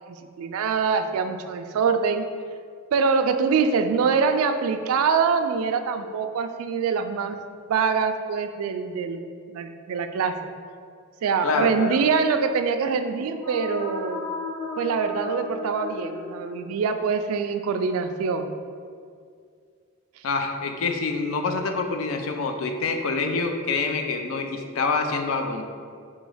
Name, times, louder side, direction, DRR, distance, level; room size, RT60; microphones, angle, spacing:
voice 1, 0.1-2.2 2.9-7.4 7.7-9.2 9.5-10.4 11.2-14.2 14.8-18.5, right 5 dB, 80° right, 8 dB, 0.3 m, -24 dB
voice 2, 11.4-12.0 20.2-25.6, left 4 dB, 70° left, 5 dB, 0.4 m, -26 dB
sound 1, 13.1-16.9, left 3 dB, 10° left, 0.5 m, -35 dB
3.6 x 3.0 x 4.8 m, 2.2 s
head